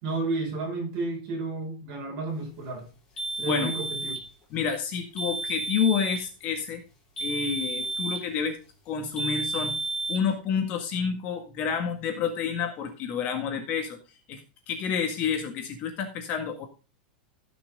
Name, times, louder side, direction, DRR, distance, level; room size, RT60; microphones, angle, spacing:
voice 1, 0.0-2.9 3.4-4.2, right 3 dB, 35° right, 5.5 m, -32 dB
sound 1, 3.2-4.3 5.2-6.3 7.2-8.3 9.2-10.3, right 2 dB, 10° left, 3.3 m, -32 dB
voice 2, 3.4-3.7 4.5-6.8 7.2-8.6 8.9-9.7 10.1-14.0 14.3-14.4 14.7-16.7, left 6 dB, 30° left, 1.7 m, -29 dB
16.0 x 6.1 x 3.6 m
supercardioid pair, 170°, 5 cm